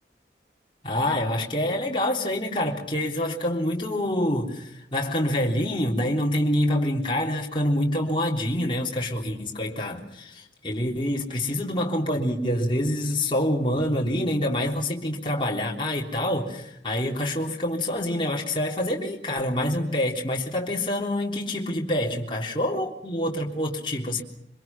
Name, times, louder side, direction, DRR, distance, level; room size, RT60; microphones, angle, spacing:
voice 1, 0.8-24.2, left 1 dB, 30° left, 3.7 m, -26 dB
27.0 x 25.5 x 6.1 m
head